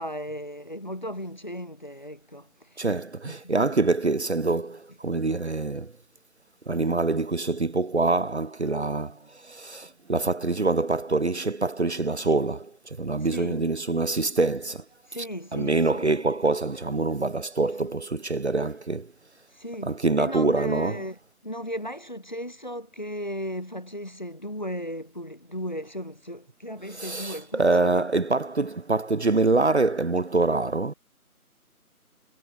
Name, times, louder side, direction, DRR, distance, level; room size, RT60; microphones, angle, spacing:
voice 1, 0.0-2.8 3.3-3.5 13.3-13.7 15.1-16.1 19.5-21.2 21.4-28.0, equal, 30° left, 0.9 m, -36 dB
voice 2, 2.8-5.9 6.7-14.8 15.5-19.1 19.8-21.0 26.9-30.9, right 3 dB, 50° right, 0.7 m, -25 dB
figure-of-eight pair, 170°, 44 cm